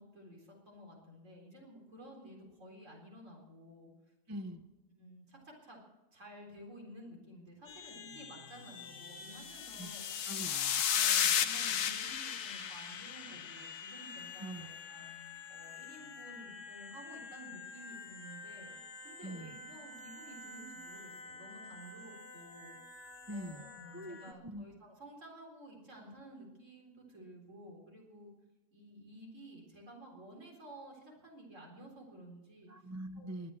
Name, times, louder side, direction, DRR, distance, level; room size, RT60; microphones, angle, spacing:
voice 1, 0.0-3.9 4.3-4.6 5.0-5.8 6.1-10.1 10.9-18.7 19.0-22.7 23.3-28.3 28.7-32.7 33.2-33.3, right 1 dB, 55° right, 0 dB, 4.4 m, -53 dB
voice 2, 4.3-4.6 9.8-9.9 10.2-10.8 14.4-14.7 19.2-19.5 23.3-23.7 23.9-24.6 32.7-33.5, right 1 dB, 25° right, 10 dB, 0.3 m, -43 dB
sound 1, 7.7-24.3, left 4 dB, 55° left, 1.6 m, -49 dB
sound 2, 9.4-13.9, left 9 dB, 85° left, 1.4 m, -33 dB
22.0 x 7.8 x 7.6 m, 1.0 s
omnidirectional pair, 1.6 m